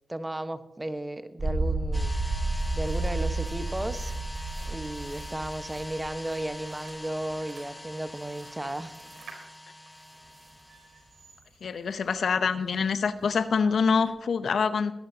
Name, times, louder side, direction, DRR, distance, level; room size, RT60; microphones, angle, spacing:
voice 1, 0.1-2.2 2.7-4.1 4.7-9.0, right 1 dB, 20° right, 10 dB, 1.2 m, -34 dB
sound 1, 1.4-6.1 6.4-6.5, right 2 dB, 50° right, 2.3 m, -30 dB
sound 2, 1.9-11.3, left 1 dB, 15° left, 1.2 m, -44 dB
sound 3, 2.4-14.1, right 4 dB, 85° right, 3.6 m, -55 dB
voice 2, 11.6-14.9, left 5 dB, 75° left, 12 dB, 0.7 m, -25 dB
20.5 x 11.0 x 2.8 m, 0.91 s
supercardioid pair, 40°, 0 cm